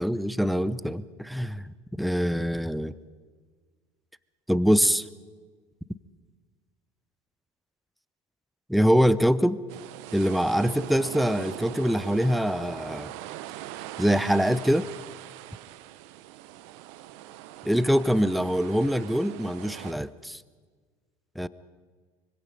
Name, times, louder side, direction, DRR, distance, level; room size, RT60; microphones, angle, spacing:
voice 1, 0.0-2.9 4.5-5.1 8.7-9.6 10.1-13.1 14.0-14.9 17.6-20.4 21.4-21.5, equal, ahead, 17 dB, 0.8 m, -24 dB
sound 1, 9.7-19.9, right 14 dB, 65° right, 1.0 m, -41 dB
25.5 x 24.5 x 5.3 m, 1.5 s
hypercardioid pair, 70°, 16 cm